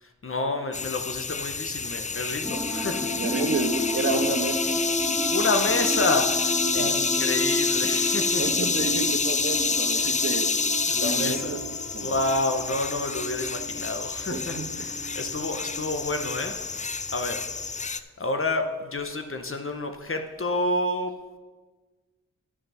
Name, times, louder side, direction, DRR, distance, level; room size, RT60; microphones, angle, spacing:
voice 1, 0.0-3.1 5.3-8.5 10.0-10.2 10.8-11.6 11.9-16.6 17.1-17.4 17.7-21.1, left 2 dB, 45° left, 5 dB, 0.9 m, -29 dB
sound 1, 0.7-18.0, left 4 dB, 25° left, 0.4 m, -28 dB
sound 2, 2.4-16.0, equal, 5° right, 1.0 m, -33 dB
voice 2, 3.2-4.8 6.7-7.2 8.4-10.5 11.0-11.6 11.9-12.1 14.3-14.6, right 3 dB, 50° right, 3 dB, 1.3 m, -30 dB
11.0 x 5.4 x 5.6 m, 1.3 s
wide cardioid pair, 60°, 29 cm